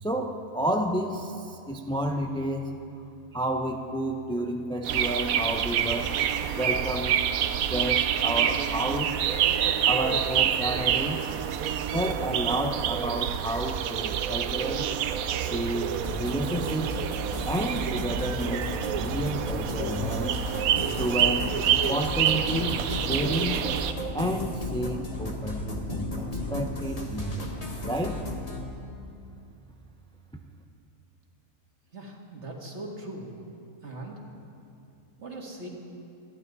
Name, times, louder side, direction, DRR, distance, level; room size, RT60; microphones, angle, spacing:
voice 1, 0.0-2.7 3.3-6.1 6.6-7.2 7.5-9.1 9.8-11.2 11.9-14.9 15.5-17.0 17.4-20.4 21.0-23.6 24.1-27.5 27.8-28.2, right 1 dB, 5° left, 3 dB, 0.5 m, -30 dB
sound 1, 4.8-23.9, right 9 dB, 80° right, 1.1 m, -27 dB
sound 2, 16.0-28.6, left 2 dB, 25° left, 1.6 m, -34 dB
voice 2, 31.9-33.3 33.8-34.2 35.2-35.7, right 2 dB, 50° right, -1 dB, 2.3 m, -40 dB
21.0 x 14.5 x 4.1 m, 2.6 s
omnidirectional pair, 1.5 m